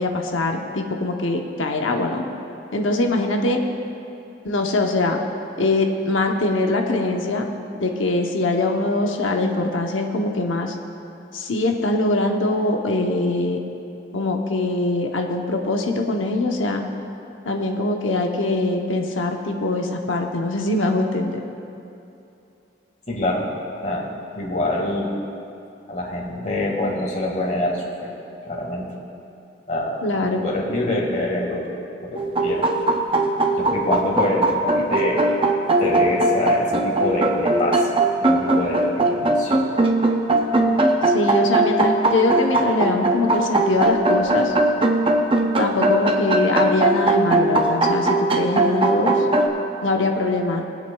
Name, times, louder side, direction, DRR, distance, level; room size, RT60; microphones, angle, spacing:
voice 1, 0.0-2.2 2.7-3.6 4.4-5.2 5.6-7.4 7.7-10.8 11.3-13.6 14.1-16.8 17.4-21.4 30.0-30.4 41.0-44.5 45.6-49.3 49.8-50.6, left 2 dB, 90° left, 3 dB, 0.9 m, -22 dB
voice 2, 23.1-23.5 23.8-25.2 25.9-28.1 28.5-29.0 29.7-32.7 33.6-35.2 35.8-37.9 38.2-39.6, left 1 dB, 40° left, -2 dB, 1.8 m, -25 dB
sound 1, 32.2-49.5, right 2 dB, 25° right, 0.6 m, -20 dB
24.0 x 8.3 x 2.3 m, 2.8 s
head